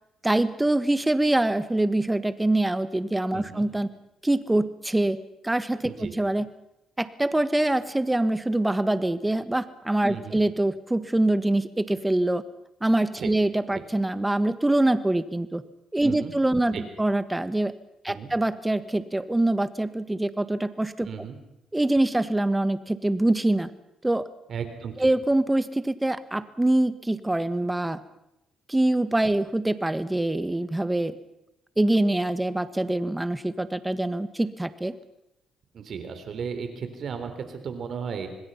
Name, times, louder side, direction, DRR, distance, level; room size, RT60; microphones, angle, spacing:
voice 1, 0.2-3.9 4.2-6.5 7.0-12.4 12.8-15.6 15.9-17.7 18.0-21.3 21.7-23.7 24.0-24.2 25.0-28.0 28.7-31.2 31.8-34.9, right 1 dB, 10° right, 13 dB, 1.3 m, -24 dB
voice 2, 3.3-3.7 5.9-6.1 10.1-10.4 13.2-13.3 16.0-16.3 16.7-16.8 18.1-18.3 21.0-21.4 24.5-25.1 35.7-38.3, right 6 dB, 60° right, 8 dB, 3.8 m, -35 dB
26.0 x 20.5 x 5.7 m, 0.86 s
cardioid pair, 90°, 0 cm